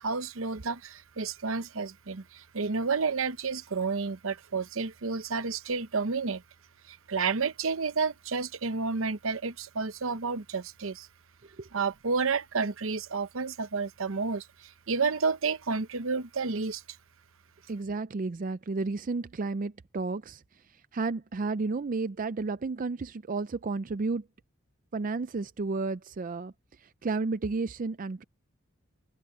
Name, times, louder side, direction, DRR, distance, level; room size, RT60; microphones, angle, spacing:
voice 1, 0.0-6.4 6.9-11.1 11.7-16.8, right 4 dB, 70° right, 0.9 m, -30 dB
voice 2, 17.7-20.4 20.9-24.2 24.9-26.5 26.8-28.2, right 3 dB, 40° right, 0.4 m, -32 dB
head